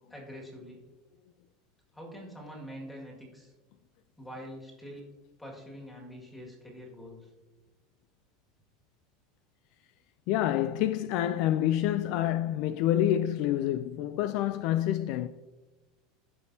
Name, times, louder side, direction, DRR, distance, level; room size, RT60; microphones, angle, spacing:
voice 1, 0.1-0.8 1.9-3.5 4.2-5.1 5.4-7.3, equal, 5° left, 1.9 m, -45 dB
voice 2, 10.3-15.3, left 12 dB, 55° left, 0.3 m, -27 dB
13.5 x 5.4 x 2.7 m
supercardioid pair, 140°, 0 cm